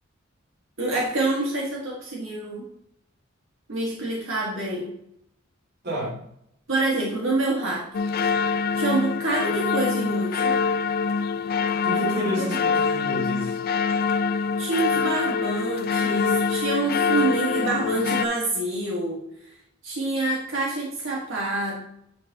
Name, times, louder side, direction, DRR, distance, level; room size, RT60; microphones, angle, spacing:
voice 1, 0.8-2.6 3.7-4.9 6.7-7.8 8.8-10.6 14.6-19.2 19.8-21.8, right 2 dB, 85° right, -3 dB, 1.9 m, -26 dB
voice 2, 5.8-6.2 11.8-13.5, equal, 55° right, -3 dB, 2.6 m, -30 dB
sound 1, 7.9-18.3, left 5 dB, 50° left, 0.4 m, -24 dB
9.8 x 5.2 x 3.0 m, 0.73 s
head